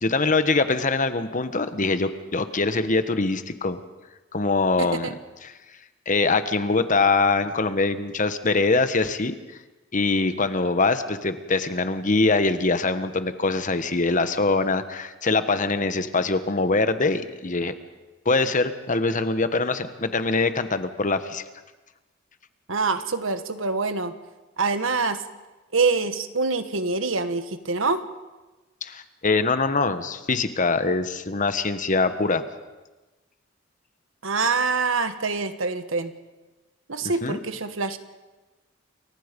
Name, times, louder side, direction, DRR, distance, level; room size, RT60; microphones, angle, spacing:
voice 1, 0.0-3.8 4.3-5.1 5.4-5.5 6.1-9.4 9.9-17.7 18.2-21.4 28.8-32.4 37.2-37.4, left 3 dB, 40° left, 10 dB, 1.3 m, -23 dB
voice 2, 4.8-5.1 22.7-24.1 24.6-25.2 25.7-28.0 34.2-36.1 36.9-38.0, right 4 dB, 85° right, 10 dB, 1.5 m, -25 dB
29.0 x 23.5 x 5.3 m, 1.1 s
head